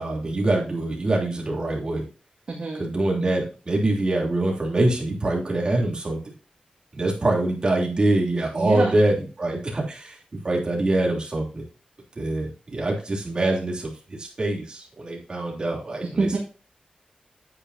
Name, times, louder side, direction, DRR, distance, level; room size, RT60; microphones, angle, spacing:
voice 1, 0.0-2.0 2.8-6.2 6.9-10.2 10.4-11.6 12.2-16.4, right 2 dB, 35° right, -2 dB, 3.2 m, -24 dB
voice 2, 2.5-2.8 8.5-9.0 16.2-16.4, right 3 dB, 55° right, -2 dB, 2.1 m, -25 dB
9.6 x 8.6 x 2.8 m, 0.34 s
wide cardioid pair, 145°, 3 cm